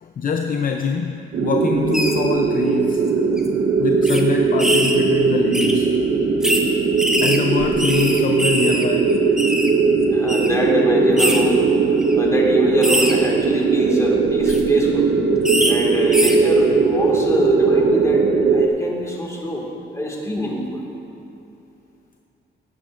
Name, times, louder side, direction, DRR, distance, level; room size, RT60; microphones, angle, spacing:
voice 1, 0.0-3.1 3.8-5.9 7.2-9.2, left 6 dB, 45° left, 4 dB, 0.5 m, -24 dB
sound 1, 1.3-18.7, right 4 dB, 55° right, 0.6 m, -18 dB
sound 2, 1.9-2.1 2.9-3.1 3.4-3.5 4.1-4.2 4.6-5.0 5.5-5.7 6.4-6.6 7.0-8.8 9.1-9.7 10.3-10.5 11.2-11.4 12.0-12.1 12.8-13.1 14.3-14.6 15.5-15.7 16.1-16.4, equal, 5° right, 0.9 m, -22 dB
voice 2, 10.1-15.1 15.6-19.7 19.9-20.8, equal, 15° left, -2 dB, 1.9 m, -25 dB
18.5 x 8.3 x 2.5 m, 2.8 s
cardioid pair, 105°, 20 cm